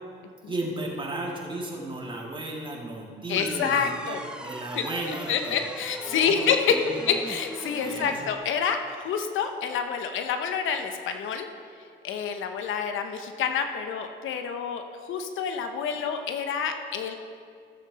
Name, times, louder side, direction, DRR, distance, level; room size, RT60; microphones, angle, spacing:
voice 1, 0.5-5.6 6.0-7.0 7.7-8.2, right 2 dB, 25° right, -2 dB, 2.3 m, -35 dB
voice 2, 3.3-4.2 4.7-4.9 5.3-6.7 7.1-8.8 9.0-11.4 12.0-17.1, left 7 dB, 80° left, 6 dB, 0.9 m, -27 dB
sound 1, 3.4-8.4, right 1 dB, 5° right, 0.6 m, -40 dB
15.0 x 7.5 x 4.1 m, 2.2 s
cardioid pair, 90°, 20 cm